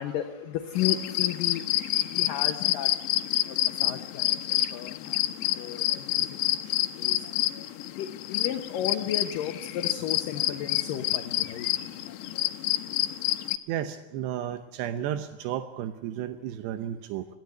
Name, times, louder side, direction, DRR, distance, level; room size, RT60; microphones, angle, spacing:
voice 1, 0.0-2.9 3.5-7.6 8.0-11.7, left 11 dB, 70° left, 7 dB, 2.4 m, -34 dB
sound 1, 0.8-13.6, left 15 dB, 85° left, 3.1 m, -28 dB
voice 2, 13.7-17.3, right 11 dB, 85° right, 11 dB, 3.0 m, -33 dB
22.0 x 16.0 x 9.3 m, 1.1 s
omnidirectional pair, 4.8 m